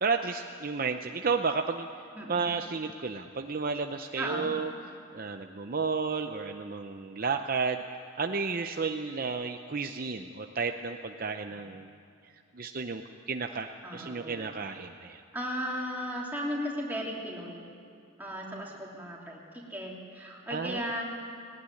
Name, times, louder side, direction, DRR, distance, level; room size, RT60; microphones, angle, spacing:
voice 1, 0.0-1.9 2.3-4.7 5.1-7.8 8.2-11.9 12.5-15.2 20.5-21.0, right 4 dB, 45° right, 6 dB, 0.7 m, -32 dB
voice 2, 2.1-2.6 4.2-4.5 13.8-14.5 15.3-17.7 18.2-21.0, equal, 10° right, -3 dB, 3.1 m, -36 dB
19.0 x 18.0 x 9.8 m, 2.4 s
head